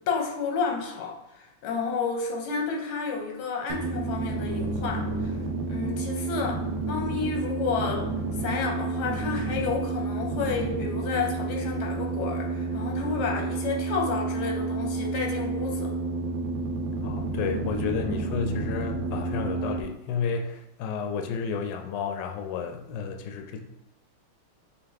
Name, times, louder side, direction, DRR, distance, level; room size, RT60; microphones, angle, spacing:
voice 1, 0.1-5.1 5.7-8.1 8.4-15.9, left 5 dB, 90° left, 2 dB, 1.7 m, -31 dB
sound 1, 3.7-19.8, right 3 dB, 75° right, 1.0 m, -30 dB
voice 2, 17.0-23.6, left 6 dB, 75° left, 4 dB, 1.1 m, -31 dB
5.4 x 2.3 x 3.5 m, 0.90 s
omnidirectional pair, 2.3 m